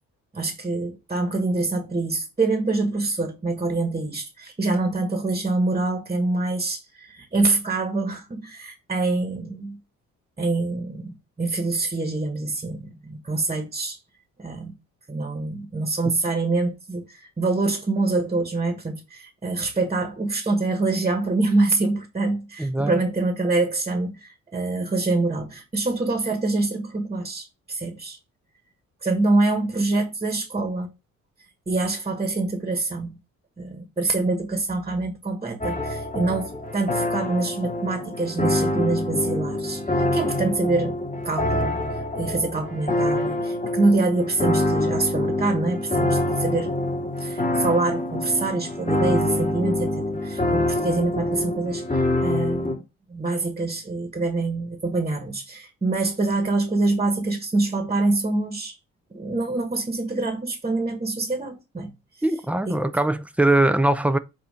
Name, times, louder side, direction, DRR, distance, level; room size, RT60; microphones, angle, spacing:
voice 1, 0.3-9.8 10.4-14.0 14.4-14.7 15.1-28.2 29.0-30.9 31.7-33.2 33.6-41.0 41.2-41.8 42.1-46.8 47.2-52.8 53.1-58.7 59.1-61.9 62.6-62.8, right 2 dB, 20° right, 1.5 m, -25 dB
voice 2, 22.6-22.9 62.2-64.2, right 2 dB, 5° right, 0.6 m, -21 dB
sound 1, 35.6-52.7, left 1 dB, 25° left, 2.8 m, -25 dB
8.1 x 2.8 x 5.0 m
cardioid pair, 90°, 30 cm